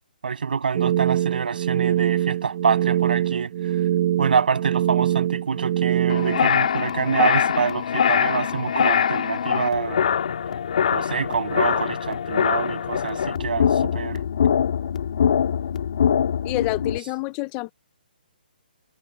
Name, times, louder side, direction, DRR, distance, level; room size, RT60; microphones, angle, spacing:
voice 1, 0.2-3.5 4.2-10.0 10.9-14.2, right 6 dB, 65° right, 7.5 m, -26 dB
sound 1, 0.7-6.4, right 12 dB, 30° right, 1.0 m, -23 dB
sound 2, 6.1-17.0, left 8 dB, 50° left, 2.6 m, -23 dB
voice 2, 16.4-17.7, left 22 dB, 15° left, 0.6 m, -27 dB
hypercardioid pair, 170°, 5 cm